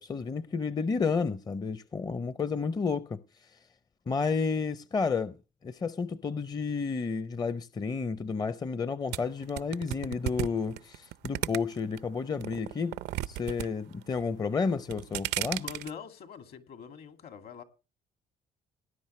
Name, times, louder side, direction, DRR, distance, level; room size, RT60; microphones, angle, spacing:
voice 1, 0.0-3.2 4.1-5.4 5.6-13.0 13.3-15.6, left 5 dB, 25° left, 0.6 m, -31 dB
sound 1, 9.1-12.0 12.4-13.7 13.9-14.4 14.8-15.9, right 15 dB, 85° right, 0.6 m, -34 dB
voice 2, 15.5-17.6, left 7 dB, 65° left, 2.3 m, -44 dB
18.5 x 10.0 x 3.2 m
cardioid pair, 110°, 17 cm